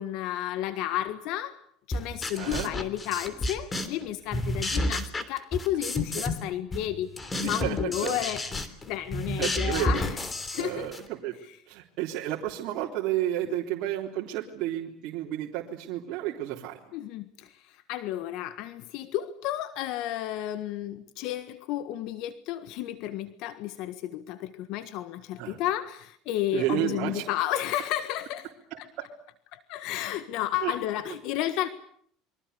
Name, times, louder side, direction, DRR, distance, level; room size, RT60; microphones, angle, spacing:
voice 1, 0.0-1.6 1.9-7.1 7.4-10.9 13.4-13.6 16.9-28.5 28.8-28.9 29.5-31.7, left 13 dB, 65° left, 12 dB, 1.6 m, -32 dB
sound 1, 1.9-4.0 4.3-6.4 6.7-11.1, left 1 dB, 20° left, 3.2 m, -31 dB
voice 2, 2.3-2.7 6.2-6.3 7.4-8.2 9.4-10.1 10.5-11.3 11.7-16.8 25.4-25.6 26.5-27.2 28.7-29.1 30.6-30.7, right 13 dB, 60° right, -2 dB, 3.6 m, -31 dB
29.0 x 23.5 x 6.9 m, 0.63 s
supercardioid pair, 125°, 0 cm